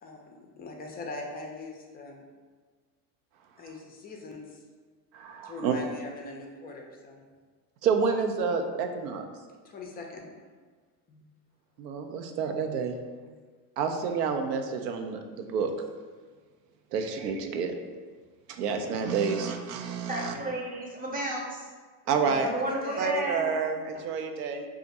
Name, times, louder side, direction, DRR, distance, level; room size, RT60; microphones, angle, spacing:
voice 1, 0.0-2.2 3.6-4.6 5.4-7.2 9.6-10.3 11.1-11.2 13.2-13.3 22.2-23.1, left 2 dB, 20° left, 1 dB, 0.3 m, -41 dB
voice 2, 5.1-5.7 7.8-9.2 11.8-12.9 13.8-15.7 16.9-18.0 18.5-20.3 22.1-22.5 23.0-24.7, right 5 dB, 90° right, 5 dB, 0.5 m, -29 dB
voice 3, 20.1-21.7 22.4-23.6, right 1 dB, 20° right, -1 dB, 0.7 m, -32 dB
2.5 x 2.4 x 4.0 m, 1.5 s
supercardioid pair, 100°, 47 cm